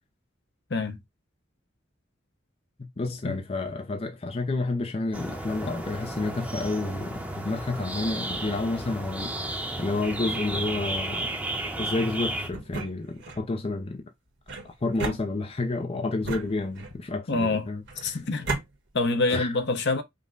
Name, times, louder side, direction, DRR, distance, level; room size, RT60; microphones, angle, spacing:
voice 1, 2.8-11.3 11.8-14.0 14.6-18.2 19.3-19.5, left 2 dB, 30° left, 0.5 m, -30 dB
sound 1, 5.1-12.5, right 1 dB, 5° right, 0.8 m, -33 dB
sound 2, 12.5-13.5 14.5-15.7 16.2-17.1 17.9-18.7, right 3 dB, 65° right, 1.2 m, -35 dB
voice 2, 17.3-17.7 18.0-18.5 18.9-20.0, left 3 dB, 60° left, 0.9 m, -26 dB
5.2 x 2.2 x 3.8 m
head